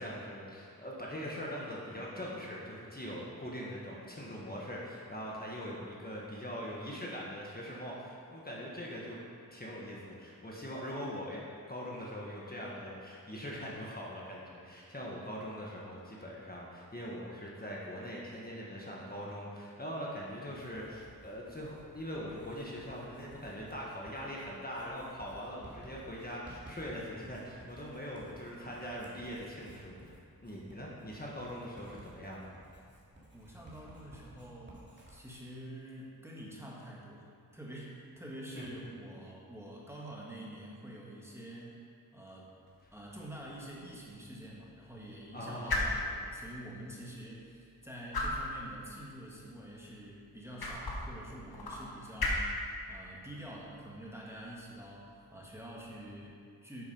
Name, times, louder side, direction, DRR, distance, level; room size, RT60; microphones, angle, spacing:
voice 1, 0.0-9.2 9.5-32.5 38.5-38.6 45.3-45.8, equal, 25° left, -4 dB, 1.4 m, -42 dB
Writing, 20.5-35.2, right 1 dB, 30° right, 2.3 m, -55 dB
voice 2, 33.3-41.8 42.1-42.5 42.9-52.5 52.9-56.8, right 1 dB, 5° right, -5 dB, 1.6 m, -47 dB
sound 1, 42.7-56.2, left 2 dB, 75° left, 1.6 m, -40 dB
9.0 x 6.8 x 5.5 m, 2.3 s
wide cardioid pair, 105°, 37 cm